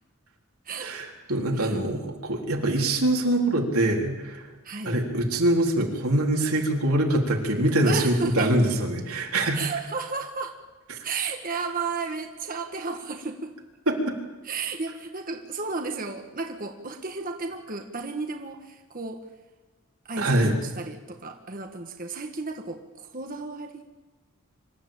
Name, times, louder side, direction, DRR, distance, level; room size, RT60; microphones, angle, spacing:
voice 1, 0.8-4.5 4.9-9.6 10.9-11.0 13.9-14.2 20.2-20.6, right 1 dB, 75° right, 0 dB, 3.9 m, -24 dB
voice 2, 4.6-5.0 7.8-8.5 9.5-10.6 11.0-13.5 14.4-19.2 20.0-23.8, right 4 dB, 40° right, 4 dB, 1.5 m, -33 dB
25.5 x 14.0 x 8.9 m, 1.3 s
head